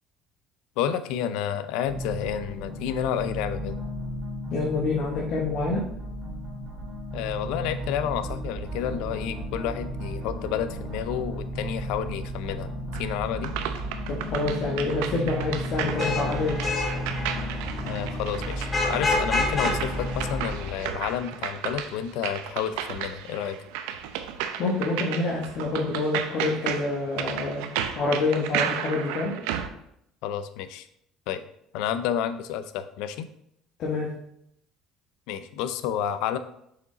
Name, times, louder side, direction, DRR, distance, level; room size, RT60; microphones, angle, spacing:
voice 1, 0.8-3.8 7.1-13.5 17.9-23.6 30.2-30.9 31.3-31.4 31.7-33.3 35.3-36.4, left 9 dB, 80° left, 12 dB, 0.6 m, -30 dB
sound 1, 1.9-20.5, equal, 40° right, 2.2 m, -34 dB
voice 2, 4.5-5.8 14.1-16.6 24.6-27.6 27.9-29.3 33.8-34.1, left 3 dB, 60° left, -3 dB, 1.5 m, -27 dB
sound 2, 12.9-29.7, right 9 dB, 90° right, 0.6 m, -34 dB
Vehicle horn car horn honking / Traffic noise roadway noise, 15.7-21.0, left 2 dB, 25° left, 1.6 m, -29 dB
6.8 x 5.1 x 3.9 m, 0.74 s
cardioid pair, 110°, 0 cm